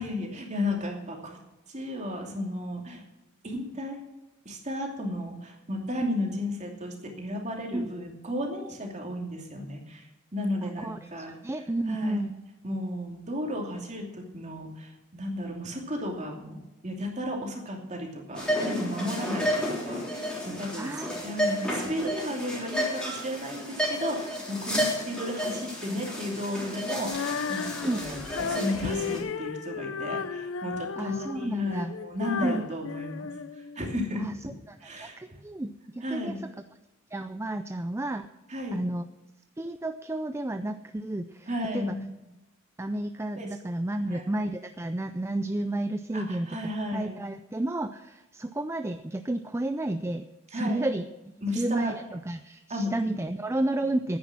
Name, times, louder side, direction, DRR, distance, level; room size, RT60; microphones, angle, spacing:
voice 1, 0.0-1.4 1.7-3.0 3.4-4.0 4.4-10.1 10.3-11.4 11.9-12.3 12.6-16.6 16.8-21.0 21.2-33.3 33.6-34.3 34.8-35.2 36.0-36.4 38.5-38.8 41.5-42.0 43.4-43.5 44.1-44.2 46.1-47.2 50.5-50.9 51.4-51.9 52.7-53.2, left 1 dB, 35° right, 1 dB, 2.7 m, -34 dB
voice 2, 10.8-12.3 20.8-21.4 21.8-22.0 27.8-28.0 31.0-31.9 32.4-32.7 34.2-34.3 35.0-36.3 37.1-38.3 38.7-39.1 39.6-41.5 41.7-41.9 42.8-46.5 46.9-51.1 51.5-54.2, right 1 dB, 10° right, 9 dB, 0.4 m, -31 dB
sound 1, 18.4-29.2, equal, 5° left, 3.3 m, -32 dB
Female singing, 27.0-34.1, left 6 dB, 65° left, 0.6 m, -34 dB
10.0 x 9.5 x 7.4 m, 1.0 s
head